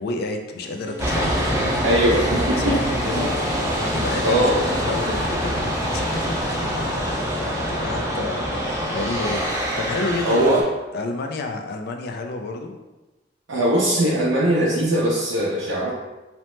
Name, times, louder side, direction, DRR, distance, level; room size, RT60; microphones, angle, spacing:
voice 1, 0.0-1.7 2.6-7.2 7.7-10.6 10.9-12.8, left 2 dB, 55° left, 4 dB, 0.3 m, -30 dB
sound 1, 0.6-6.5 6.8-6.9, left 1 dB, 85° left, 0.9 m, -40 dB
sound 2, 1.0-10.6, equal, 15° right, 0.5 m, -25 dB
voice 2, 1.8-2.8 4.2-4.6 10.2-10.6 13.5-15.9, right 1 dB, 85° right, -7 dB, 0.5 m, -20 dB
2.8 x 2.0 x 3.1 m, 1.1 s
head